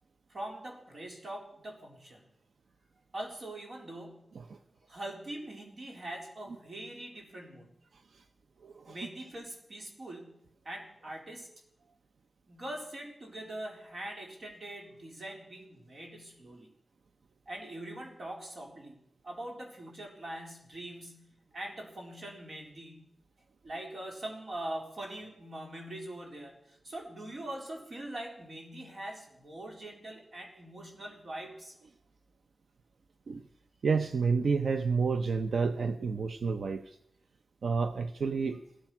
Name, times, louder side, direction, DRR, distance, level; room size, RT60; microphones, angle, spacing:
voice 1, 0.3-2.3 3.1-4.4 4.9-7.7 8.9-11.5 12.5-16.7 17.5-23.1 23.6-31.7, right 1 dB, 55° right, 0 dB, 4.1 m, -43 dB
voice 2, 8.6-9.0 33.3-33.4 33.8-37.0 37.6-38.6, right 5 dB, 80° right, 9 dB, 0.7 m, -30 dB
16.5 x 13.5 x 6.0 m, 0.78 s
wide cardioid pair, 130°, 0 cm